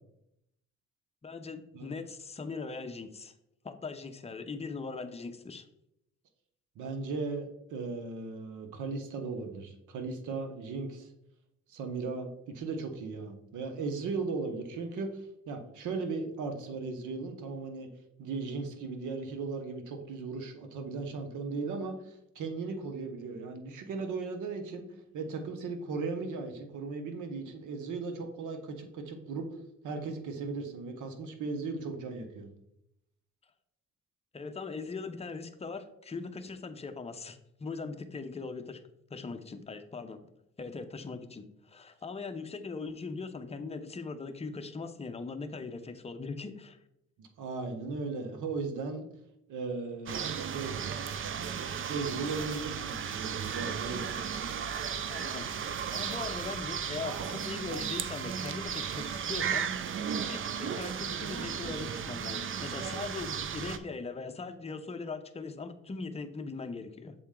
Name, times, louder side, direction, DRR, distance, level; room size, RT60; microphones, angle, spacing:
voice 1, 1.2-3.3 3.6-5.7 34.3-38.8 39.1-40.2 40.6-46.8 55.1-55.5 55.9-59.7 60.3-67.1, left 4 dB, 20° left, 6 dB, 0.7 m, -40 dB
voice 2, 6.8-11.1 11.7-15.2 15.5-17.9 18.2-24.8 25.1-29.5 29.8-32.5 47.2-49.1 49.5-50.8 51.9-54.1, right 4 dB, 80° right, 6 dB, 1.0 m, -37 dB
sound 1, 50.1-63.8, right 7 dB, 45° right, 0.5 m, -35 dB
7.0 x 4.2 x 3.7 m, 0.80 s
cardioid pair, 90°, 30 cm